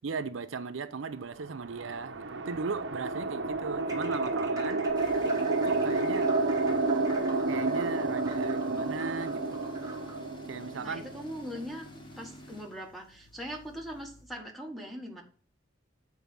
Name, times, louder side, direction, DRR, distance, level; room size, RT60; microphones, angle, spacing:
voice 1, 0.0-4.9 5.6-6.3 7.5-9.4 10.5-11.1, right 4 dB, 85° right, 0.6 m, -37 dB
sound 1, 1.4-11.8, right 3 dB, 70° right, 0.9 m, -30 dB
claves sequence, 3.8-10.3, right 2 dB, 20° right, 1.2 m, -46 dB
Tools, 4.9-14.4, left 1 dB, 25° left, 1.2 m, -49 dB
voice 2, 10.8-11.9 12.2-15.2, equal, ahead, 1.3 m, -41 dB
7.3 x 4.6 x 5.4 m
head